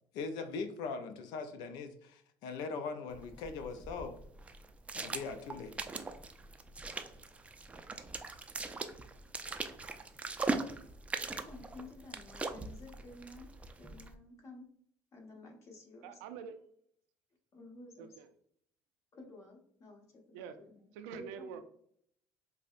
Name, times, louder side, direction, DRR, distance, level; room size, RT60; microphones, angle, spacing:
voice 1, 0.1-4.2 4.9-5.7, left 4 dB, 75° left, 8 dB, 0.4 m, -40 dB
sound 1, 3.1-14.1, right 3 dB, 15° right, 0.4 m, -41 dB
voice 2, 11.3-13.5 13.8-14.6 15.1-16.2 17.5-18.1 19.2-21.6, left 2 dB, 45° left, 0 dB, 1.2 m, -52 dB
voice 3, 16.0-16.6 18.0-18.3 20.3-20.6 20.9-21.6, right 7 dB, 90° right, 9 dB, 0.4 m, -45 dB
5.2 x 2.1 x 2.5 m, 0.66 s
supercardioid pair, 95°, 7 cm